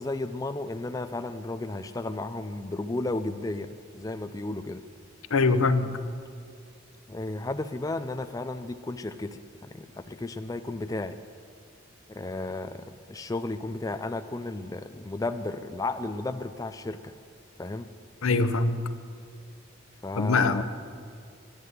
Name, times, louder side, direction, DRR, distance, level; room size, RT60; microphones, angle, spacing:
voice 1, 0.0-4.8 7.1-11.2 12.1-17.1 17.6-17.9 20.0-20.6, left 2 dB, 15° left, 8 dB, 0.4 m, -33 dB
voice 2, 5.3-6.0 18.2-18.8 20.2-20.6, left 3 dB, 90° left, 10 dB, 0.7 m, -23 dB
11.0 x 10.0 x 8.0 m, 2.3 s
head